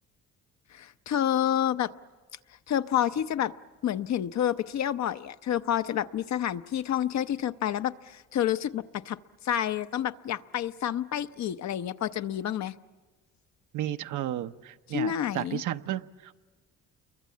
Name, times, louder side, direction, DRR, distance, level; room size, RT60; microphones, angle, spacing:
voice 1, 0.7-1.9 2.7-3.5 3.8-9.2 9.4-12.7 14.9-15.6, left 10 dB, 65° left, 11 dB, 0.8 m, -29 dB
voice 2, 13.7-16.3, right 12 dB, 80° right, 9 dB, 0.8 m, -33 dB
29.0 x 23.0 x 8.5 m, 1.4 s
cardioid pair, 90°, 30 cm